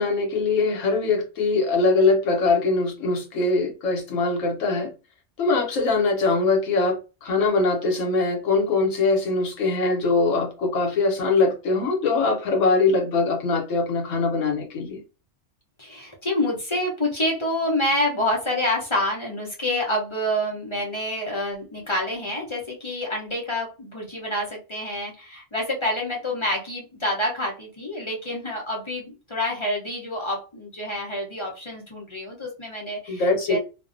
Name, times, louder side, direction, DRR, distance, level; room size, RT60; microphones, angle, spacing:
voice 1, 0.0-4.9 5.4-15.0 33.1-33.6, left 3 dB, 85° left, 1.1 m, -22 dB
voice 2, 15.8-33.6, left 1 dB, 35° left, 0.5 m, -27 dB
2.5 x 2.1 x 2.4 m
omnidirectional pair, 1.3 m